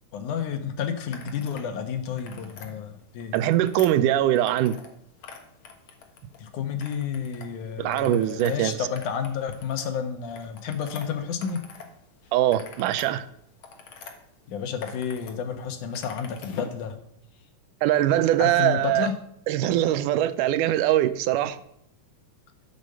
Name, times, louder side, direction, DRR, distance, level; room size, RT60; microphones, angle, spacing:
voice 1, 0.1-3.4 6.4-11.6 14.5-17.0 18.4-19.1, left 7 dB, 75° left, 2.7 m, -31 dB
sound 1, 1.1-1.7 2.0-2.7 3.2-4.9 5.2-6.4 6.8-7.5 7.8-11.9 12.2-14.1 14.6-15.3 15.6-16.8, left 6 dB, 50° left, 1.8 m, -44 dB
voice 2, 3.3-4.8 7.8-8.8 12.3-13.3 17.8-19.1 19.5-21.6, right 13 dB, 80° right, 2.2 m, -22 dB
12.0 x 7.2 x 6.6 m
omnidirectional pair, 3.6 m